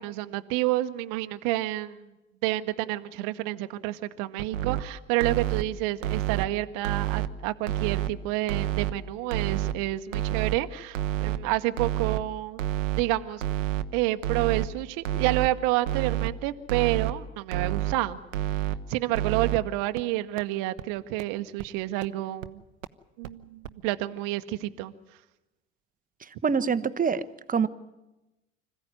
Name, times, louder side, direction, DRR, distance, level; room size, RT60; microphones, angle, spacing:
voice 1, 0.0-2.1 2.4-12.6 13.0-13.4 13.9-18.2 18.9-22.6 23.2-24.9, right 16 dB, 60° right, 9 dB, 1.1 m, -29 dB
sound 1, 4.4-4.8 5.2-5.6 6.0-6.4 6.8-7.3 7.7-8.1 8.5-8.9 9.3-9.7 10.1-10.6 11.0-11.4 11.8-12.2 12.6-13.0 13.4-13.8 14.2-14.7 15.1-15.5 15.9-16.3 16.7-17.1 17.5-17.9 18.3-18.8 19.1-19.6 20.0-20.1 20.4-20.5 20.8-20.9 21.2-21.3 21.6-21.7 22.0-22.1 22.4-22.5 22.8-22.9 23.2-23.3 23.6-23.7, right 12 dB, 85° right, 0.9 m, -28 dB
voice 2, 26.4-27.2 27.5-27.7, right 6 dB, 20° right, 13 dB, 1.1 m, -24 dB
25.5 x 15.0 x 9.7 m, 1.0 s
hypercardioid pair, 70°, 38 cm